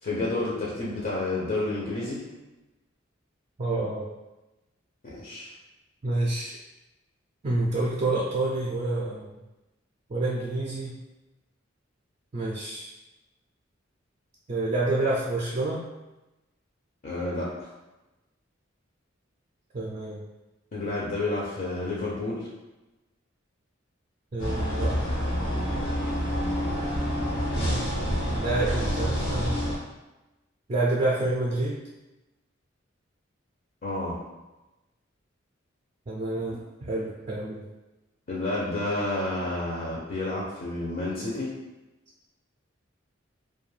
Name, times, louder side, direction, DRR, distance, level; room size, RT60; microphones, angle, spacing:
voice 1, 0.0-2.2 5.0-5.5 17.0-17.7 20.7-22.5 26.7-27.0 33.8-34.2 38.3-41.5, left 2 dB, 45° left, -5 dB, 0.5 m, -30 dB
voice 2, 3.6-4.1 6.0-6.5 7.4-9.4 10.1-11.0 12.3-12.9 14.5-15.8 19.7-20.2 24.3-25.0 27.6-27.8 28.2-29.6 30.7-31.8 36.1-37.6, right 2 dB, 30° right, -4 dB, 0.3 m, -28 dB
sound 1, 24.4-29.8, equal, 85° left, 1.1 m, -27 dB
2.4 x 2.2 x 3.1 m, 1.0 s
head